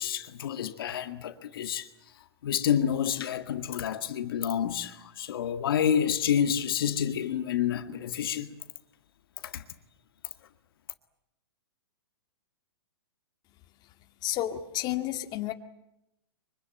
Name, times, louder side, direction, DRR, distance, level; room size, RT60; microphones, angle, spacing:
voice 1, 0.0-1.9 2.4-8.5 9.4-9.6, left 9 dB, 65° left, 1.8 m, -29 dB
voice 2, 14.2-15.5, left 13 dB, 30° left, 1.9 m, -31 dB
24.5 x 24.0 x 8.9 m
hypercardioid pair, 125°, 13 cm